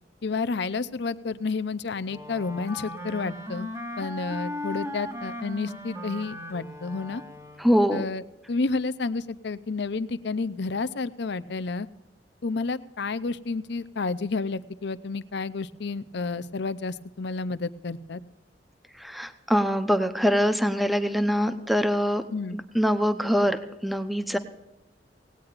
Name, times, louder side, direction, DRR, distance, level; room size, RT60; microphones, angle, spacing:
voice 1, 0.2-3.7 4.0-7.2 7.9-8.2 8.5-11.9 12.4-18.2 22.3-22.6, left 4 dB, 65° left, 15 dB, 0.6 m, -30 dB
Wind instrument woodwind instrument, 2.1-7.8, left 1 dB, 15° right, 1.6 m, -37 dB
voice 2, 7.6-8.0 19.0-22.2 22.5-24.4, equal, ahead, 9 dB, 0.8 m, -24 dB
18.5 x 17.5 x 2.5 m, 0.92 s
head